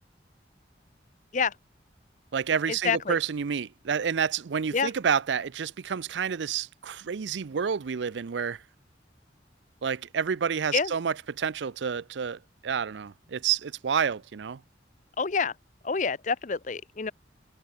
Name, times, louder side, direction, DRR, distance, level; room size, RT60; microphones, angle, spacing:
voice 1, 2.3-8.6 9.8-14.6, right 7 dB, 80° right, 0.5 m, -29 dB
voice 2, 2.8-3.2 4.7-4.9 10.7-10.9 15.2-15.5 15.8-17.1, left 5 dB, 45° left, 0.7 m, -27 dB
head